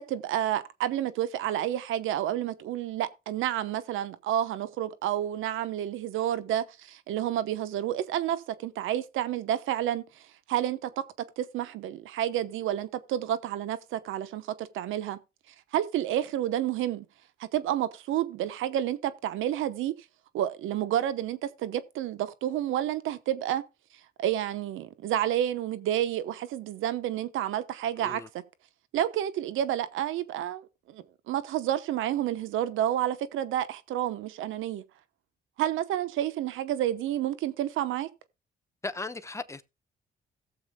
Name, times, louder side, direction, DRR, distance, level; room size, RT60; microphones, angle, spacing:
voice 1, 0.0-11.1 11.4-15.2 15.7-17.0 17.4-19.9 20.3-23.6 24.2-28.4 28.9-34.8 35.6-38.1, right 11 dB, 85° right, 0.9 m, -30 dB
voice 2, 38.8-39.6, left 3 dB, 15° left, 0.9 m, -36 dB
17.5 x 7.1 x 2.2 m
cardioid pair, 90°, 20 cm